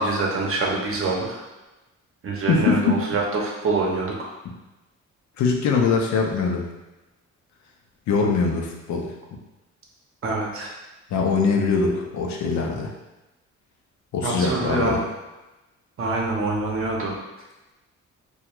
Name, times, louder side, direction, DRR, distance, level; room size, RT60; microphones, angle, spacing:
voice 1, 0.0-1.4 2.2-4.3 10.2-10.7 14.2-15.0 16.0-17.2, right 3 dB, 45° right, -2 dB, 0.7 m, -25 dB
voice 2, 2.5-3.0 4.4-4.5 5.4-6.7 8.1-9.1 11.1-12.9 14.1-15.0, left 4 dB, 70° left, 2 dB, 0.5 m, -22 dB
2.4 x 2.3 x 2.9 m, 1.1 s
cardioid pair, 90°, 30 cm